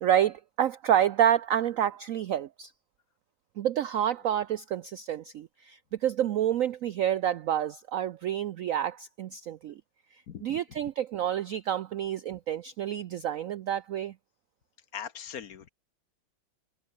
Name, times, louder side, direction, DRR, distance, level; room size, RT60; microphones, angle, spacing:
voice 1, 0.0-2.7 3.6-9.7 10.4-14.1, right 10 dB, 90° right, 0.7 m, -28 dB
voice 2, 10.3-10.6 14.9-15.7, left 8 dB, 55° left, 1.4 m, -40 dB
omnidirectional pair, 2.1 m